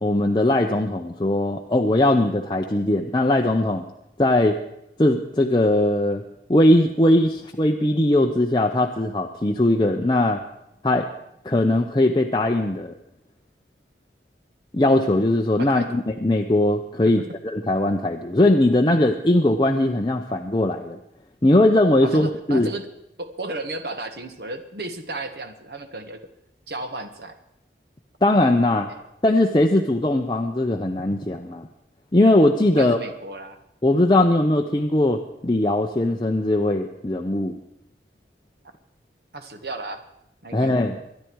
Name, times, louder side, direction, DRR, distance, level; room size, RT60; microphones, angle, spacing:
voice 1, 0.0-3.8 4.2-4.6 5.0-6.2 6.5-10.4 10.8-11.1 11.4-12.9 14.7-21.0 21.4-22.7 28.2-28.9 29.2-31.7 32.1-33.0 33.8-37.6 40.5-41.0, left 1 dB, 25° left, 2 dB, 0.7 m, -20 dB
voice 2, 15.6-16.0 22.0-22.9 23.2-26.2 26.7-27.4 28.9-29.0 32.8-33.6 39.3-40.0 40.4-40.8, right 2 dB, 65° right, 7 dB, 1.5 m, -34 dB
24.0 x 10.0 x 4.7 m, 0.82 s
head